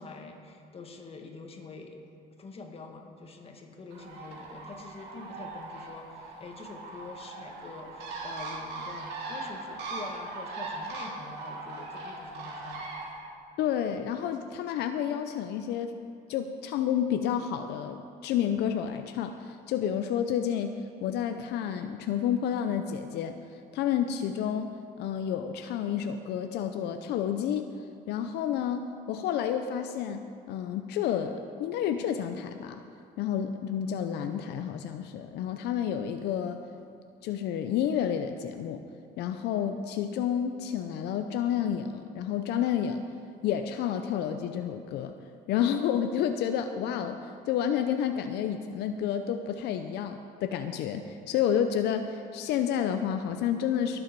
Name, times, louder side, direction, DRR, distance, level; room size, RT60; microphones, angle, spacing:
voice 1, 0.0-2.0 2.4-12.9, left 3 dB, 35° left, 3 dB, 1.7 m, -45 dB
Bird, 3.9-13.1, right 3 dB, 85° right, 2.3 m, -40 dB
voice 2, 13.6-15.9 16.3-20.7 21.0-23.4 23.7-27.7 28.1-32.8 33.2-36.6 37.2-38.8 39.2-43.0 43.4-45.1 45.5-54.0, left 9 dB, 80° left, 7 dB, 0.6 m, -30 dB
20.5 x 7.8 x 4.7 m, 2.4 s
cardioid pair, 110°, 17 cm